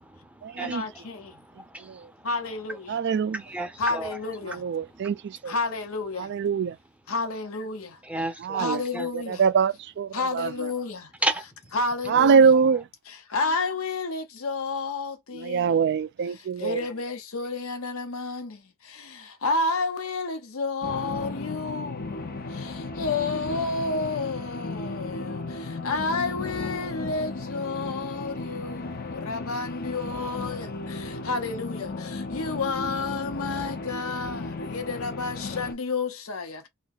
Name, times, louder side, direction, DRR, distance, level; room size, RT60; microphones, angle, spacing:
voice 1, 0.6-1.3 2.2-2.8 3.8-4.6 5.5-6.2 7.1-7.9 8.6-9.4 10.1-11.0 11.7-12.5 13.3-15.6 16.6-18.6 19.4-22.0 23.0-25.4 25.8-28.8 29.1-30.7 31.3-31.9 32.3-36.7, left 3 dB, 75° left, 0.9 m, -30 dB
voice 2, 1.3-1.8 3.3-4.2 5.0-5.1 8.0-9.1 11.2-11.5 12.1-12.2, right 1 dB, 5° right, 0.6 m, -31 dB
voice 3, 2.9-3.4 4.5-5.5 6.2-6.8 8.4-8.8 9.1-10.5 12.1-12.9 15.3-16.8, right 6 dB, 50° right, 0.3 m, -23 dB
sound 1, 20.8-35.7, left 3 dB, 45° left, 0.6 m, -35 dB
2.7 x 2.3 x 4.0 m
head